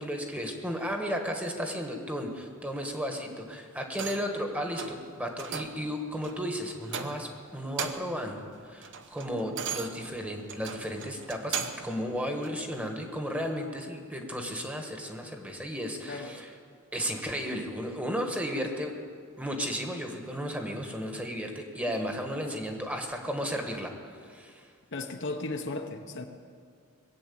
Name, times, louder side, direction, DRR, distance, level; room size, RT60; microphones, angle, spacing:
voice 1, 0.0-16.5 16.9-18.9 19.4-23.9 24.2-24.7, equal, 5° right, 3 dB, 1.4 m, -34 dB
sound 1, 3.9-4.4 4.8-5.0 5.4-5.8 6.2-6.4 6.9-7.4 7.6-8.2 8.6-11.9 12.4-12.6, right 6 dB, 60° right, 0.9 m, -37 dB
voice 2, 16.0-16.4 24.9-26.3, left 2 dB, 55° left, 4 dB, 1.0 m, -35 dB
20.5 x 7.7 x 8.6 m, 2.1 s
head